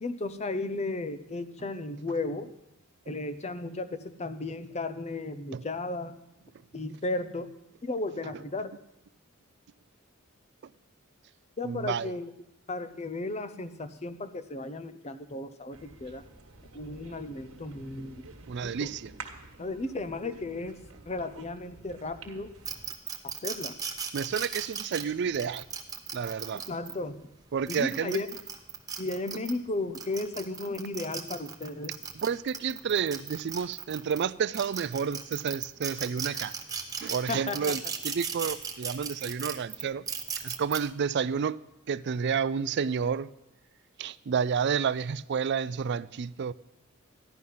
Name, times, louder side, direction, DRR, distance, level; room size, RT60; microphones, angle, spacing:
voice 1, 0.0-2.5 3.1-6.2 6.7-7.5 7.8-8.7 11.6-12.3 12.7-16.2 16.7-18.1 18.6-18.9 19.6-20.7 21.1-22.5 23.2-23.7 26.5-27.2 27.7-28.3 29.0-31.9 37.3-37.8, left 2 dB, 30° left, 0.7 m, -34 dB
voice 2, 11.6-12.1 18.5-19.1 24.1-25.6 26.1-26.6 27.5-28.2 32.2-36.5 37.0-40.0 40.4-41.6 41.9-43.3 44.0-46.5, right 6 dB, 55° right, 0.4 m, -30 dB
sound 1, 15.7-22.9, right 3 dB, 70° right, 1.6 m, -49 dB
sound 2, 22.7-26.9 27.5-29.5 29.9-34.2 34.5-40.8, right 6 dB, 15° right, 0.9 m, -36 dB
14.0 x 11.0 x 5.6 m
head